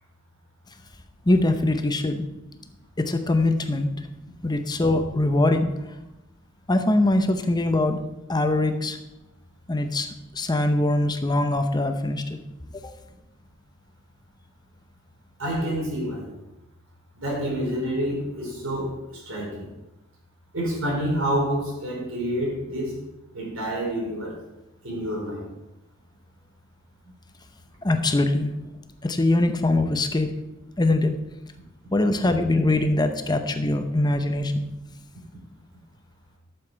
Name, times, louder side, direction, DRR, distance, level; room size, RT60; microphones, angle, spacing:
voice 1, 1.3-2.2 3.0-3.9 4.4-5.7 6.7-8.0 8.3-9.0 9.7-10.1 10.4-12.4 12.8-12.9 27.8-28.5 29.0-30.3 30.8-31.1 31.9-34.7, left 2 dB, 20° left, 7 dB, 0.7 m, -22 dB
voice 2, 15.4-16.3 17.2-19.6 20.5-23.0 23.3-24.4 24.8-25.5, equal, 90° right, -3 dB, 4.5 m, -28 dB
12.0 x 7.0 x 4.5 m, 0.93 s
head